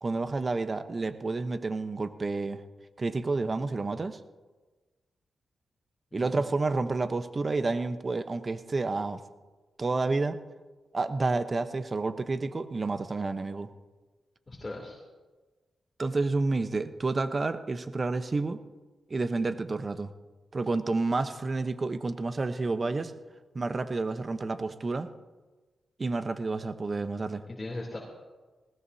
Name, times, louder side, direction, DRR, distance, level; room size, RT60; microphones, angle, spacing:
voice 1, 0.0-2.6 3.0-4.2 6.1-9.2 9.8-10.4 10.9-13.7 16.0-18.6 19.1-20.1 20.5-23.1 23.5-25.1 26.0-27.4, right 3 dB, 40° right, 10 dB, 0.9 m, -30 dB
voice 2, 6.1-6.4 14.5-15.0 27.5-28.0, left 2 dB, 30° left, -3 dB, 3.1 m, -39 dB
20.0 x 17.5 x 2.8 m, 1.3 s
cardioid pair, 65°, 0 cm